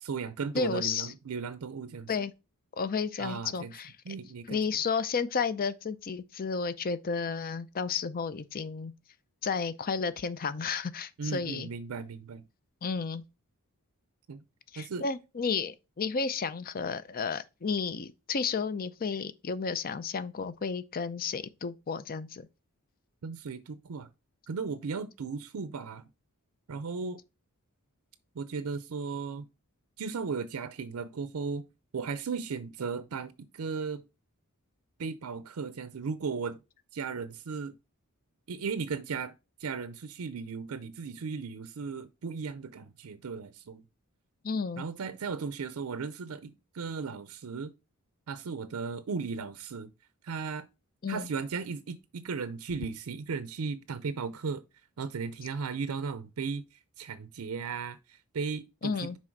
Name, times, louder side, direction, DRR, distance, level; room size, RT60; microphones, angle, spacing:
voice 1, 0.0-2.1 3.2-3.7 4.1-4.6 11.2-12.4 14.3-14.4 14.8-15.0 23.2-24.1 24.5-26.1 26.7-27.2 28.4-29.5 30.0-31.6 31.9-34.0 35.0-36.6 36.9-37.7 38.5-39.3 39.6-43.8 44.8-47.7 48.3-49.9 50.2-50.7 51.1-54.6 55.0-59.1, right 5 dB, 70° right, 0.5 m, -36 dB
voice 2, 0.5-1.1 2.1-2.3 2.8-3.9 4.5-8.9 9.4-11.7 12.8-13.2 14.7-22.5 44.4-44.8 51.0-51.3 58.8-59.2, left 5 dB, 40° left, 0.5 m, -32 dB
6.2 x 4.2 x 4.5 m
head